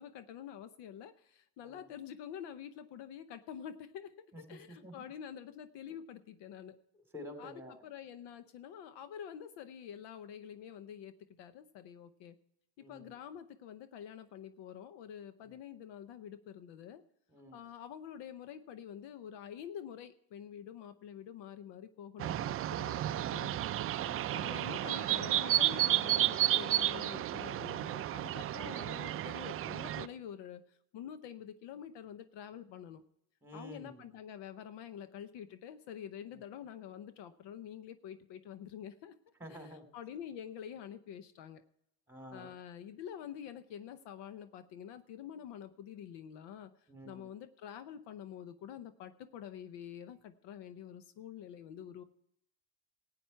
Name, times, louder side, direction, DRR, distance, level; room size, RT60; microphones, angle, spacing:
voice 1, 0.0-6.8 7.4-12.4 12.8-17.0 17.5-23.0 23.3-23.6 24.3-33.0 33.5-39.1 39.5-41.6 42.3-52.0, left 9 dB, 65° left, 12 dB, 0.8 m, -47 dB
voice 2, 4.3-4.9 6.9-7.7 12.8-13.1 15.5-15.6 17.3-17.6 22.9-23.2 24.0-24.4 33.4-34.0 39.4-39.9 42.1-42.5 46.9-47.3, equal, 5° right, 5 dB, 2.9 m, -50 dB
sound 1, 22.2-30.1, right 13 dB, 35° right, 0.4 m, -32 dB
14.5 x 9.0 x 4.5 m, 0.77 s
supercardioid pair, 85°, 45 cm